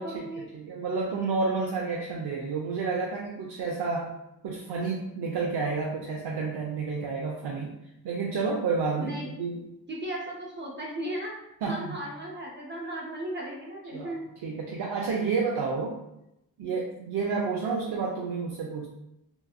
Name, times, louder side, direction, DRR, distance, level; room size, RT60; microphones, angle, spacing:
voice 1, 0.0-0.5 9.0-9.3 9.9-11.3 11.6-14.3, right 1 dB, 30° right, -3 dB, 0.4 m, -36 dB
voice 2, 0.5-4.1 4.4-7.7 8.0-9.6 11.6-12.1 13.9-14.1 14.4-16.0 16.6-18.9, right 4 dB, 85° right, -1 dB, 0.5 m, -30 dB
2.8 x 2.5 x 2.3 m, 0.84 s
wide cardioid pair, 180°, 39 cm